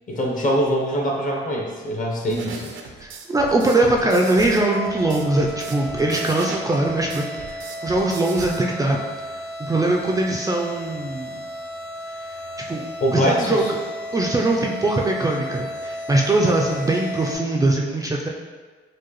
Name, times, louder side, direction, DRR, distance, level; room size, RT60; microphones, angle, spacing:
voice 1, 0.1-2.7 13.0-13.7, equal, 40° left, -1 dB, 0.8 m, -23 dB
sound 1, 2.3-8.6, right 5 dB, 75° right, 0.5 m, -37 dB
voice 2, 3.0-7.6 7.8-9.0 9.6-11.4 12.2-12.3 12.7-12.8 13.1-13.7 14.1-18.3, right 2 dB, 20° right, -1 dB, 0.3 m, -21 dB
sound 2, 4.6-17.4, equal, 65° left, 1.3 m, -34 dB
4.6 x 2.2 x 3.0 m, 1.4 s
cardioid pair, 90°, 20 cm